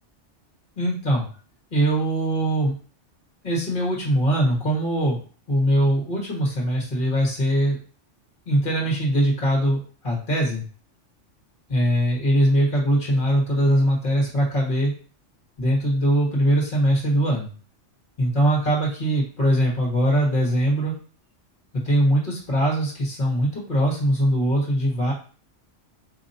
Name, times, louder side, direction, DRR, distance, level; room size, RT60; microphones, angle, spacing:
voice 1, 0.8-1.2 1.7-2.7 3.4-5.2 5.5-7.8 8.4-9.8 10.0-10.6 11.7-14.9 15.6-17.5 18.2-20.9 21.8-25.1, equal, 45° left, -3 dB, 1.6 m, -21 dB
4.9 x 2.8 x 2.7 m, 0.40 s
omnidirectional pair, 1.2 m